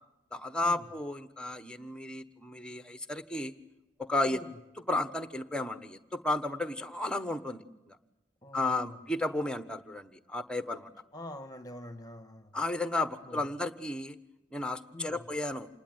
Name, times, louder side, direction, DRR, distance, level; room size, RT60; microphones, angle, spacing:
voice 1, 0.3-3.5 4.0-4.4 4.9-8.0 8.5-10.9 12.5-14.2 14.5-15.7, left 2 dB, 5° left, 1.2 m, -33 dB
voice 2, 8.4-9.0 11.1-12.6 13.1-13.5 14.9-15.3, left 1 dB, 20° left, 1.4 m, -45 dB
28.0 x 20.0 x 9.4 m
head